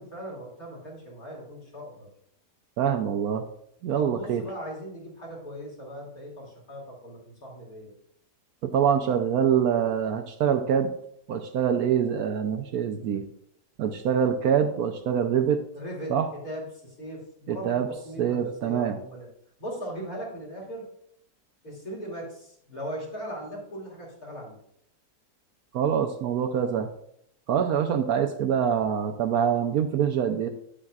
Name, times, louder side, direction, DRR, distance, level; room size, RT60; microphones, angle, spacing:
voice 1, 0.0-2.1 3.9-7.9 15.7-16.1 16.4-19.3 19.6-20.9 21.6-24.6, equal, 60° left, -4 dB, 3.2 m, -39 dB
voice 2, 2.8-3.4 3.8-4.4 8.6-10.9 11.3-13.2 13.8-15.6 16.1-16.3 17.5-17.9 18.2-19.0 25.7-26.9 27.5-30.5, right 8 dB, 70° right, 6 dB, 1.0 m, -25 dB
9.1 x 8.7 x 2.4 m, 0.71 s
omnidirectional pair, 1.8 m